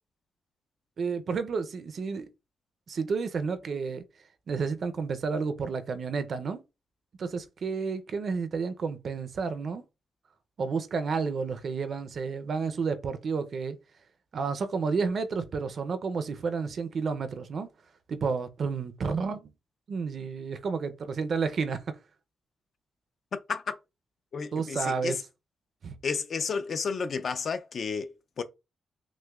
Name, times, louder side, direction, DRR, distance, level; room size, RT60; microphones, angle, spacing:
voice 1, 1.0-2.3 2.9-4.0 4.5-6.6 7.2-9.8 10.6-13.8 14.3-17.7 18.1-19.5 19.9-22.0 24.5-25.2 25.8-26.0, right 5 dB, 50° right, 0.5 m, -31 dB
voice 2, 24.3-25.2 26.0-28.4, left 5 dB, 50° left, 0.4 m, -32 dB
6.0 x 2.1 x 2.3 m
wide cardioid pair, 140°, 0 cm